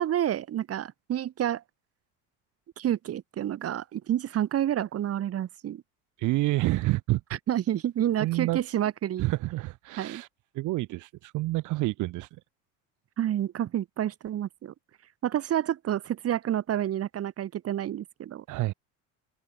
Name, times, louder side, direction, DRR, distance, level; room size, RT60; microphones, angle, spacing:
voice 1, 0.0-1.6 2.8-5.8 7.5-9.2 10.0-10.2 13.2-14.7 15.2-18.4, right 11 dB, 45° right, 3.1 m, -29 dB
voice 2, 6.2-7.2 8.2-8.6 9.2-10.3 10.5-12.3 18.5-18.7, right 18 dB, 60° right, 1.6 m, -28 dB
cardioid pair, 115°, 33 cm